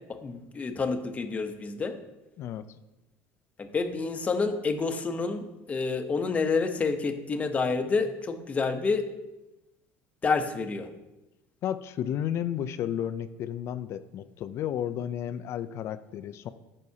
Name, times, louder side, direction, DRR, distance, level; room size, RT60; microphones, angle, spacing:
voice 1, 0.1-1.9 3.6-9.1 10.2-10.9, left 4 dB, 25° left, 7 dB, 0.8 m, -28 dB
voice 2, 11.6-16.5, left 10 dB, 50° left, 13 dB, 0.4 m, -32 dB
13.5 x 5.4 x 2.8 m, 0.99 s
cardioid pair, 120°, 6 cm